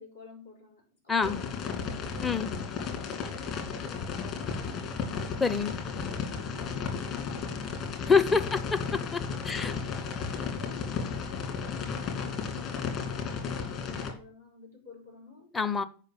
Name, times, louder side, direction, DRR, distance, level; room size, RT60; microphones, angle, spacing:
voice 1, 0.0-1.5 2.2-8.5 9.3-10.1 10.6-15.5, left 4 dB, 75° left, 5.0 m, -52 dB
sound 1, 1.2-14.1, left 5 dB, 35° left, 2.6 m, -34 dB
voice 2, 2.2-2.5 5.4-5.8 8.1-9.7 15.5-15.8, left 5 dB, 15° left, 0.8 m, -26 dB
8.4 x 5.5 x 6.6 m
figure-of-eight pair, 90°, 0 cm